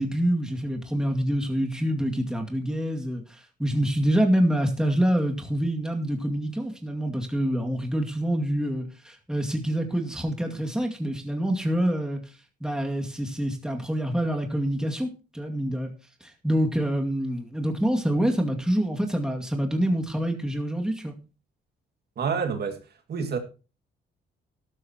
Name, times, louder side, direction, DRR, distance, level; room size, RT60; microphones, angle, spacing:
voice 1, 0.0-12.2 12.6-15.9 16.2-21.1, equal, 5° right, 2.3 m, -26 dB
voice 2, 22.2-22.8 23.1-23.4, right 6 dB, 55° right, 2.3 m, -27 dB
13.5 x 12.5 x 3.0 m
cardioid pair, 90°, 20 cm